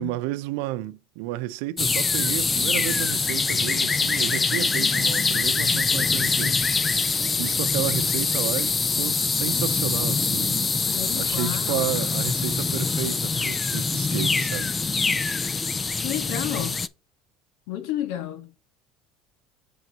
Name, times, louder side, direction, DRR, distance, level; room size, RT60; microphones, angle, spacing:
voice 1, 0.0-6.6 7.4-14.7, right 15 dB, 80° right, 0.6 m, -32 dB
sound 1, 1.8-16.9, left 4 dB, 20° left, 0.4 m, -24 dB
sound 2, 6.8-13.5, left 3 dB, 35° left, 1.8 m, -48 dB
voice 2, 10.9-12.0 16.0-16.8 17.7-18.6, left 12 dB, 75° left, 1.2 m, -31 dB
7.1 x 3.9 x 4.5 m
cardioid pair, 140°, 0 cm